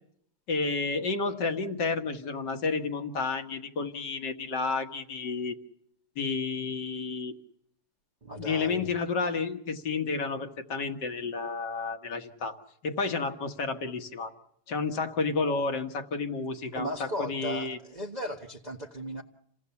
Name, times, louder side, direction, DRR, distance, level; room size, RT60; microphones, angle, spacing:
voice 1, 0.5-5.6 6.2-7.3 8.4-12.6 12.8-14.3 14.7-17.8, left 4 dB, 55° left, 6 dB, 2.1 m, -31 dB
voice 2, 8.2-9.0 16.7-19.2, equal, 25° right, 1 dB, 1.1 m, -36 dB
28.5 x 17.5 x 7.1 m, 0.71 s
omnidirectional pair, 2.3 m